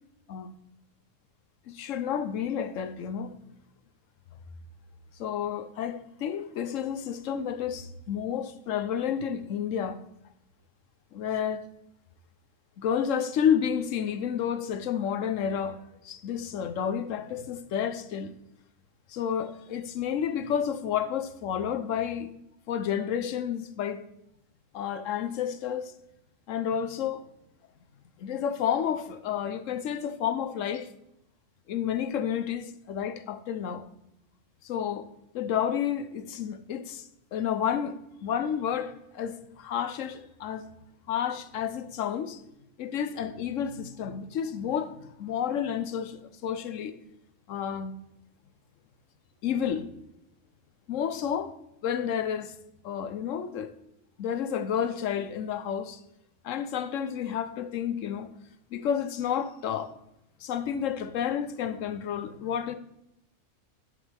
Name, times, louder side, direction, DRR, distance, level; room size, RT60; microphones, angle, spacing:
voice 1, 1.7-3.3 5.2-10.0 11.1-11.6 12.8-18.3 19.1-22.3 22.7-24.0 24.7-25.9 26.5-27.3 28.2-30.9 31.7-33.9 34.6-35.1 35.3-37.0 37.3-40.7 41.1-42.4 42.8-46.9 47.5-47.9 49.4-49.9 50.9-51.5 51.8-52.5 52.8-53.7 54.2-56.0 56.4-58.3 58.7-59.9 60.4-62.7, left 8 dB, 80° left, 1.1 m, -30 dB
10.5 x 7.3 x 3.4 m
omnidirectional pair, 1.3 m